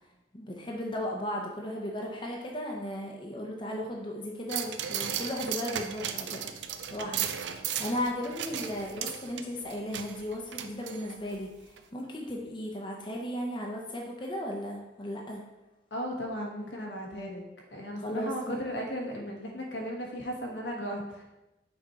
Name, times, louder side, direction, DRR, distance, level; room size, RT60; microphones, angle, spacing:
voice 1, 0.3-6.4 6.9-15.4 18.0-18.6, left 1 dB, 25° left, -1 dB, 0.8 m, -36 dB
sound 1, 4.5-11.4 11.8-11.9, right 9 dB, 85° right, 0.5 m, -36 dB
voice 2, 15.9-17.4 17.7-21.3, equal, 85° left, 0 dB, 1.4 m, -36 dB
6.1 x 4.3 x 4.5 m, 0.98 s
head